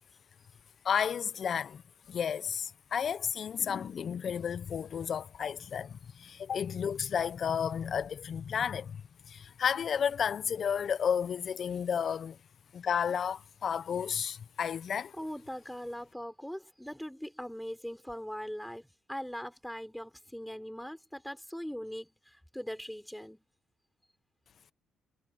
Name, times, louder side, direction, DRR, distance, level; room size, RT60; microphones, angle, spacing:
voice 1, 0.8-1.8 2.1-9.0 9.3-12.4 12.7-15.1, left 7 dB, 55° left, 0.8 m, -32 dB
voice 2, 15.1-23.4, equal, ahead, 5.8 m, -41 dB
cardioid pair, 90°, 0 cm